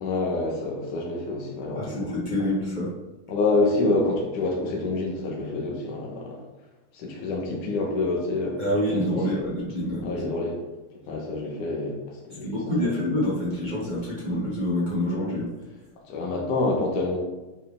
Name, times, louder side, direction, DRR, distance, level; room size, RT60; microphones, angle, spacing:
voice 1, 0.0-2.1 3.3-6.4 6.9-9.4 10.0-10.6 11.1-12.9 16.1-17.2, left 2 dB, 60° left, -1 dB, 2.4 m, -27 dB
voice 2, 1.7-2.9 8.6-10.2 12.4-15.5, left 1 dB, 20° right, -9 dB, 1.2 m, -27 dB
11.0 x 4.7 x 3.7 m, 1.1 s
omnidirectional pair, 4.8 m